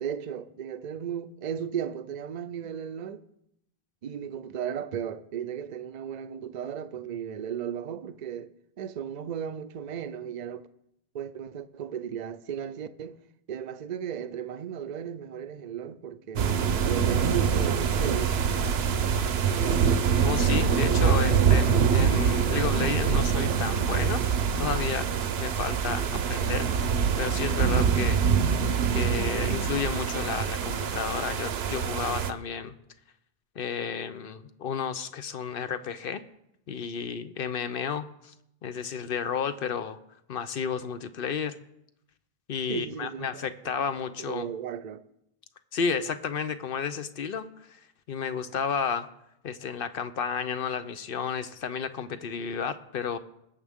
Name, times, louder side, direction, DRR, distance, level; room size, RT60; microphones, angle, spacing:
voice 1, 0.0-3.2 4.0-10.7 11.1-13.2 13.5-18.4 42.7-43.7 44.2-45.0, right 8 dB, 50° right, 0.6 m, -35 dB
sound 1, 16.4-32.3, right 7 dB, 75° right, 1.0 m, -25 dB
voice 2, 20.2-24.2 24.6-28.2 28.5-28.6 28.9-32.7 33.6-36.2 36.7-38.3 38.6-40.0 40.3-41.6 42.5-44.5 45.7-47.8 48.1-49.1 49.4-53.2, left 6 dB, 65° left, 0.8 m, -32 dB
20.0 x 7.4 x 3.6 m
omnidirectional pair, 1.1 m